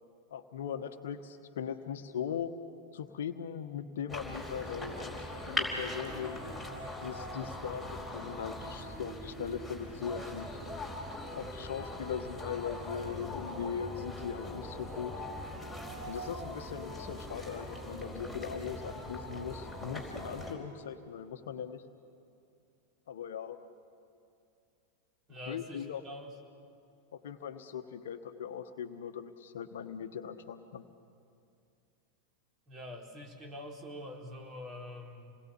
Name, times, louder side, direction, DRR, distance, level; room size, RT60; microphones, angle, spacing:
voice 1, 0.3-2.5 2.9-5.0 5.5-6.4 7.0-10.5 11.3-15.1 16.1-21.8 23.1-23.6 25.5-26.0 27.1-30.8, left 8 dB, 60° left, 9 dB, 1.2 m, -39 dB
sound 1, 4.1-20.5, left 1 dB, 5° right, 4.8 m, -41 dB
voice 2, 25.3-26.3 32.7-35.3, left 1 dB, 25° right, 1 dB, 3.9 m, -45 dB
28.5 x 20.5 x 8.5 m, 2.4 s
figure-of-eight pair, 90°, 0 cm